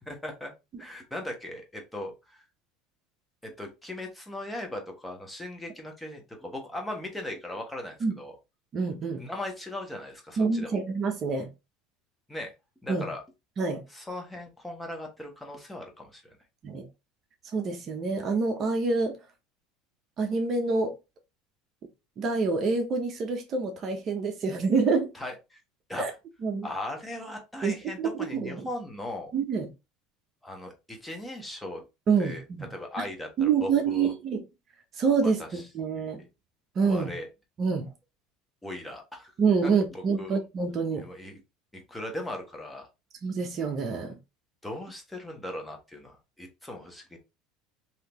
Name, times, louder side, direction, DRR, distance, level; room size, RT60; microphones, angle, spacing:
voice 1, 0.1-0.5 0.8-2.4 3.4-8.4 9.2-10.8 12.3-12.5 12.8-13.2 13.9-16.4 25.1-25.6 25.9-26.1 26.6-29.3 30.4-31.8 32.2-32.4 32.7-34.1 35.2-35.7 36.0-36.3 36.8-37.3 38.6-39.3 39.6-40.4 40.9-41.4 41.7-42.9 44.6-47.2, left 1 dB, 10° left, 1.1 m, -38 dB
voice 2, 8.7-9.2 10.4-11.5 12.9-13.1 13.6-13.8 16.6-16.9 17.5-19.1 20.2-20.9 22.2-25.1 26.0-26.1 26.4-26.7 27.6-27.7 28.0-28.6 29.3-29.7 32.1-32.6 33.4-34.4 35.0-36.2 36.8-37.1 37.6-37.9 39.4-41.0 43.2-44.2, right 5 dB, 45° right, 0.8 m, -26 dB
3.3 x 2.8 x 2.9 m
supercardioid pair, 100°, 0 cm